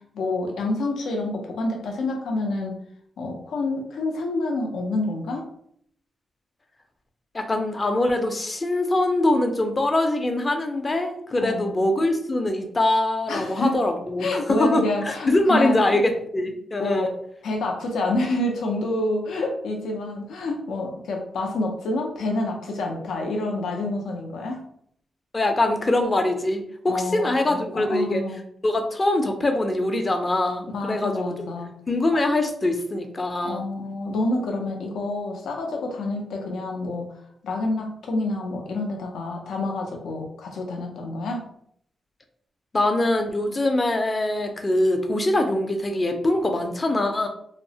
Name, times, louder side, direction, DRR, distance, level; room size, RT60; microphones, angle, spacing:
voice 1, 0.1-2.8 3.2-5.5 11.4-11.7 13.3-13.8 14.2-15.8 16.8-17.1 17.4-24.6 26.9-28.4 30.7-31.7 33.4-37.1 37.4-41.5, left 2 dB, 90° left, 2 dB, 0.5 m, -28 dB
voice 2, 7.3-17.1 25.3-28.2 28.6-31.5 31.9-33.6 42.7-47.3, left 1 dB, 30° left, 5 dB, 0.5 m, -23 dB
2.8 x 2.0 x 2.7 m, 0.67 s
cardioid pair, 90°, 0 cm